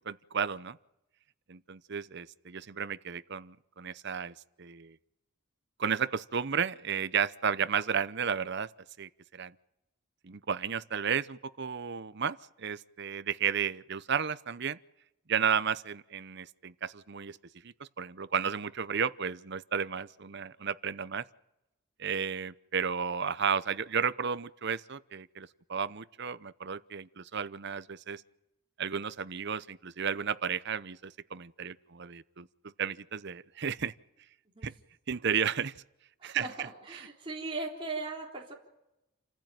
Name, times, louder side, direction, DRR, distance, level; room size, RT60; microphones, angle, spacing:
voice 1, 0.1-0.8 1.5-5.0 5.8-8.7 9.0-9.5 10.2-14.8 15.3-17.4 17.6-21.2 22.0-28.2 28.8-33.9 34.6-34.7 35.1-35.7 36.2-36.7, right 7 dB, 55° right, 0.8 m, -33 dB
voice 2, 36.2-38.5, right 3 dB, 25° right, 3.8 m, -38 dB
28.5 x 15.0 x 9.1 m
head